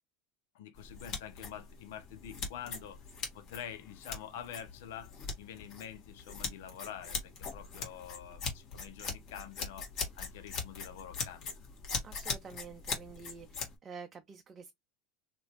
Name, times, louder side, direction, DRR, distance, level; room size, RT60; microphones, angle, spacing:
voice 1, 0.5-9.9 10.1-11.6, left 9 dB, 75° left, 0.7 m, -47 dB
sound 1, 0.7-13.7, left 5 dB, 55° left, 1.7 m, -41 dB
voice 2, 12.0-14.7, right 5 dB, 30° right, 0.5 m, -48 dB
3.0 x 2.9 x 3.0 m
hypercardioid pair, 95°, 0 cm